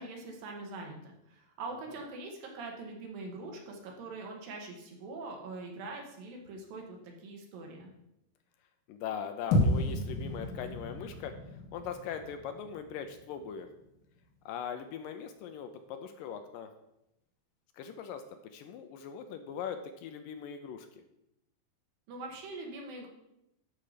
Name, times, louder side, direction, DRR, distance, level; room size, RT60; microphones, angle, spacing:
voice 1, 0.0-7.9 22.1-23.1, right 3 dB, 70° right, 1 dB, 3.3 m, -43 dB
voice 2, 8.9-11.3 11.7-13.7 14.5-16.7 17.7-21.0, left 7 dB, 80° left, 7 dB, 2.2 m, -40 dB
sound 1, 9.5-13.9, left 1 dB, 60° left, 1.3 m, -32 dB
13.0 x 5.6 x 5.0 m, 0.84 s
omnidirectional pair, 4.3 m